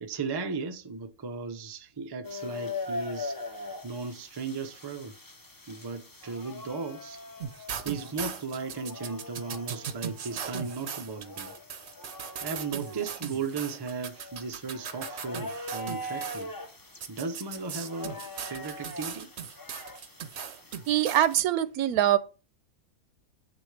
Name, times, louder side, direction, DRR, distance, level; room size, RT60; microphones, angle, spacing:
voice 1, 0.0-3.4 3.8-5.1 5.7-7.2 7.8-11.5 12.4-16.5 17.1-19.3, right 4 dB, 30° right, 0.4 m, -36 dB
sound 1, 2.2-21.4, left 2 dB, 20° left, 0.6 m, -42 dB
sound 2, 7.4-16.4 17.0-21.4, right 7 dB, 55° right, 0.9 m, -38 dB
voice 2, 20.9-22.2, right 12 dB, 80° right, 1.1 m, -23 dB
7.9 x 6.4 x 3.3 m
omnidirectional pair, 1.6 m